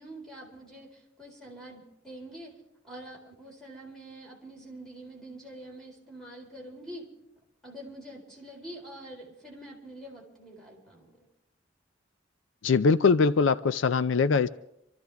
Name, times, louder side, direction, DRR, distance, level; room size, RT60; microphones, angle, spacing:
voice 1, 0.0-2.5 2.8-7.1 7.6-11.2, right 1 dB, 5° left, -2 dB, 4.2 m, -45 dB
voice 2, 12.6-14.5, left 4 dB, 75° left, 14 dB, 0.5 m, -22 dB
26.0 x 14.0 x 3.5 m, 0.82 s
head